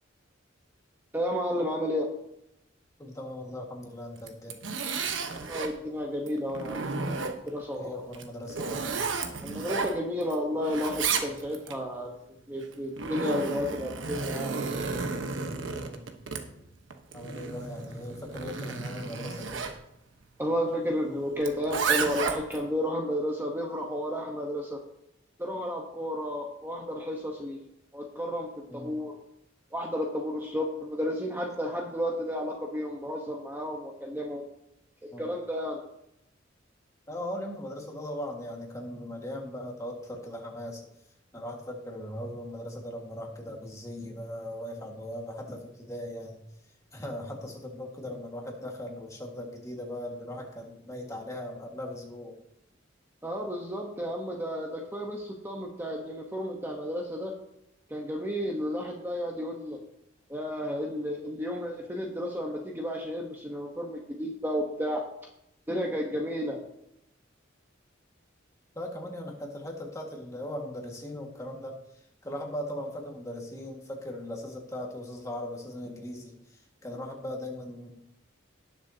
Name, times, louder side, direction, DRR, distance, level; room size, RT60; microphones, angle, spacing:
voice 1, 1.1-2.1 5.3-6.9 7.5-8.0 9.4-12.1 12.5-14.5 20.4-24.8 25.4-27.6 27.9-29.2 29.7-34.4 35.0-35.8 53.2-57.3 57.9-59.8 60.3-65.0 65.7-66.6, equal, 10° right, 0 dB, 1.0 m, -32 dB
voice 2, 3.0-4.6 7.8-9.0 15.7-16.0 17.1-19.6 28.7-28.9 35.1-35.3 37.1-40.9 41.3-46.4 46.9-52.4 68.8-71.8 72.2-77.9, left 1 dB, 15° left, 0 dB, 1.7 m, -39 dB
Zipper (clothing), 4.2-5.8 6.3-7.6 8.1-10.3 10.6-11.7 12.6-19.8 21.4-22.6, right 4 dB, 75° right, 1.1 m, -32 dB
18.5 x 6.9 x 2.8 m, 0.79 s
head